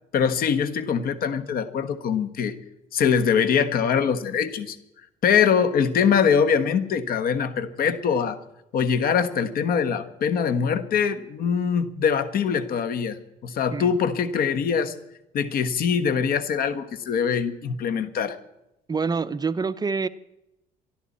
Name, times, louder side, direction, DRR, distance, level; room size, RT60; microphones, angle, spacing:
voice 1, 0.1-2.6 2.9-4.8 5.2-8.4 8.7-14.9 15.3-18.4, left 7 dB, 60° left, 11 dB, 1.4 m, -23 dB
voice 2, 18.9-20.1, right 4 dB, 25° right, 14 dB, 0.6 m, -26 dB
23.5 x 12.5 x 4.2 m, 0.87 s
cardioid pair, 110°, 17 cm